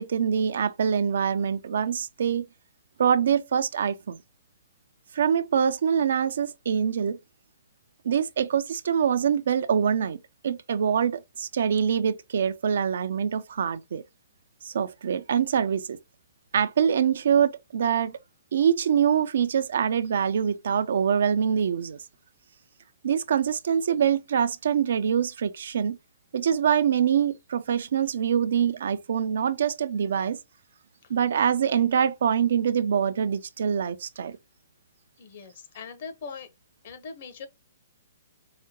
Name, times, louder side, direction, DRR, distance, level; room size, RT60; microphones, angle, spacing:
voice 1, 0.0-2.5 3.0-4.2 5.1-7.2 8.0-10.2 10.4-14.0 14.7-16.0 16.5-18.2 18.5-22.0 23.0-26.0 26.3-30.4 31.1-34.4, right 8 dB, 65° right, 0.4 m, -24 dB
voice 2, 35.2-36.5 36.8-37.5, left 5 dB, 55° left, 1.0 m, -41 dB
4.7 x 2.2 x 2.9 m
hypercardioid pair, 130°, 0 cm